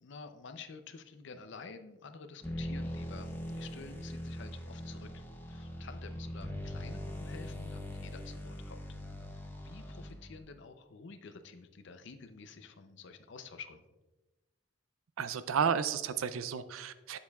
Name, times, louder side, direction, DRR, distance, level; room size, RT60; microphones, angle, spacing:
voice 1, 0.0-3.3 3.6-5.2 5.5-8.8 9.3-13.8, left 4 dB, 60° left, 9 dB, 0.5 m, -50 dB
sound 1, 2.4-10.4, left 1 dB, 10° left, 0.7 m, -41 dB
voice 2, 15.2-17.2, right 7 dB, 80° right, 13 dB, 0.4 m, -32 dB
8.5 x 7.2 x 2.3 m, 1.1 s
head